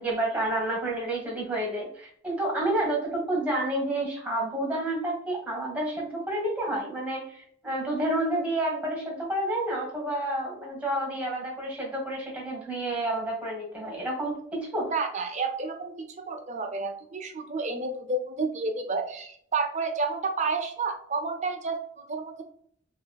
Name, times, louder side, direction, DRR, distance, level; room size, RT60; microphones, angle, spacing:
voice 1, 0.0-14.9, right 1 dB, 5° right, -2 dB, 1.2 m, -29 dB
voice 2, 14.9-22.4, right 3 dB, 35° right, 5 dB, 0.5 m, -30 dB
3.2 x 2.9 x 2.2 m, 0.63 s
head